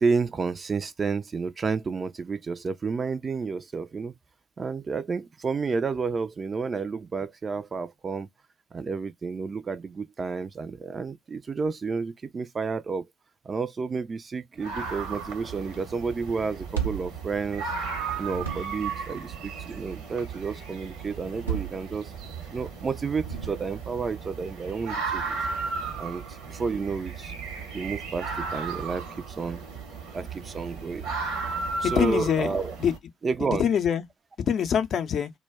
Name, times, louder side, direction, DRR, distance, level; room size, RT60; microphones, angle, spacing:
voice 1, 0.0-4.1 4.6-8.3 8.7-13.1 13.4-17.7 18.2-22.1 22.5-25.5 26.0-27.3 27.7-29.6 30.1-31.1 31.8-32.8 33.2-33.7, right 4 dB, 35° right, 0.4 m, -31 dB
sound 1, 14.6-33.0, right 5 dB, 65° right, 0.9 m, -35 dB
sound 2, 16.5-17.9 18.2-19.0 21.2-22.4 23.1-24.0, right 8 dB, 85° right, 0.6 m, -34 dB
voice 2, 31.8-32.9 33.5-34.0 34.4-35.3, left 8 dB, 50° left, 0.5 m, -25 dB
2.2 x 2.1 x 3.4 m
figure-of-eight pair, 45°, 0 cm